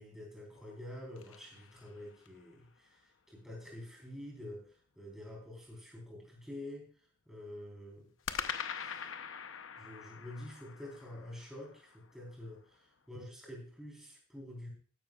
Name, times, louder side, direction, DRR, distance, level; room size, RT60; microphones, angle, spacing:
voice 1, 0.0-6.9 7.3-8.1 8.7-9.1 9.8-14.7, left 1 dB, ahead, -1 dB, 3.9 m, -48 dB
sound 1, 0.6-2.5 8.3-12.5, left 7 dB, 85° left, 0.8 m, -44 dB
14.5 x 11.5 x 2.4 m, 0.40 s
head